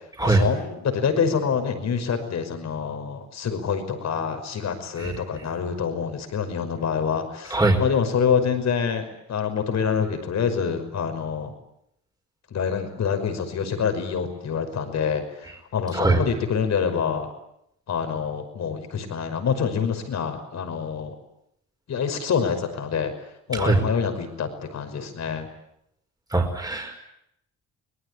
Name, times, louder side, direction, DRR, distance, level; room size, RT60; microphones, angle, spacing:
voice 1, 0.2-11.5 12.5-17.3 17.9-21.1 21.9-23.1 23.5-25.5, left 6 dB, 60° left, 7 dB, 5.6 m, -26 dB
voice 2, 7.5-7.8 15.9-16.2 23.5-23.8 26.3-27.0, right 2 dB, 15° right, 2 dB, 5.2 m, -21 dB
25.0 x 19.5 x 9.9 m, 0.78 s
cardioid pair, 90°, 30 cm